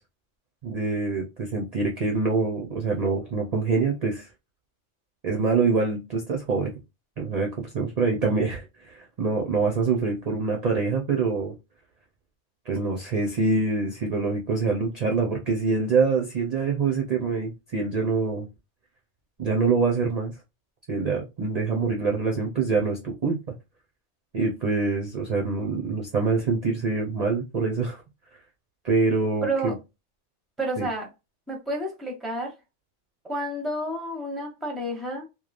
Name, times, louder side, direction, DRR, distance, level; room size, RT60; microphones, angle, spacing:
voice 1, 0.6-4.3 5.2-6.7 7.2-11.5 12.7-18.5 19.4-20.3 20.9-23.4 24.3-28.0 28.8-29.7 30.8-30.9, right 4 dB, 45° right, 0.5 m, -25 dB
voice 2, 29.4-29.7 30.6-31.1 31.5-32.5 33.2-35.3, right 1 dB, ahead, 0.6 m, -30 dB
3.0 x 2.1 x 2.4 m
omnidirectional pair, 1.2 m